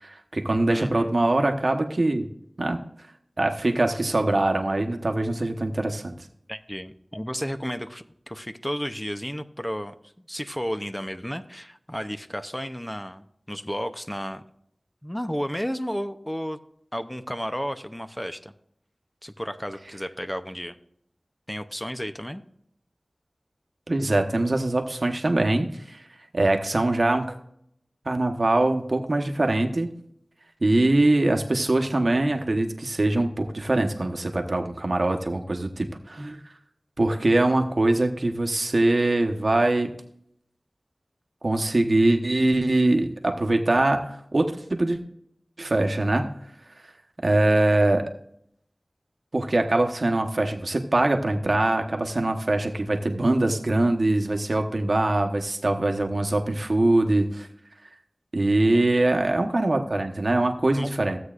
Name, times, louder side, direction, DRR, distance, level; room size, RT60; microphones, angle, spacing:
voice 1, 0.0-2.3 2.6-2.8 3.4-6.1 23.9-26.0 26.3-27.4 28.0-29.9 30.6-36.4 37.0-39.9 41.4-45.0 45.6-46.3 47.2-48.1 49.3-57.5 58.3-61.2, right 2 dB, 65° right, 5 dB, 1.0 m, -23 dB
voice 2, 0.7-1.1 6.5-14.4 15.0-16.6 16.9-18.5 19.2-20.8 21.5-22.4 58.7-59.1 60.7-60.9, equal, 10° left, 9 dB, 0.7 m, -33 dB
15.5 x 8.0 x 2.5 m, 0.70 s
wide cardioid pair, 45°, 0 cm